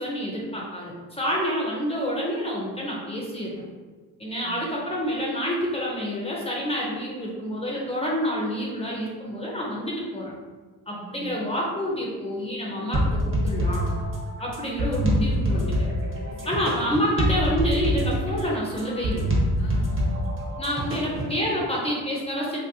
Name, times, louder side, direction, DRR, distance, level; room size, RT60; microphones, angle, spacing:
voice 1, 0.0-3.6 4.2-10.3 10.9-13.9 14.4-15.9 16.4-19.3 20.5-22.6, equal, 15° left, -4 dB, 0.6 m, -28 dB
voice 2, 11.0-11.5 16.1-17.1 19.6-20.2, equal, 65° left, -1 dB, 0.8 m, -43 dB
sound 1, 12.9-21.4, equal, 30° right, 0.8 m, -25 dB
2.9 x 2.7 x 2.7 m, 1.4 s
cardioid pair, 100°, 39 cm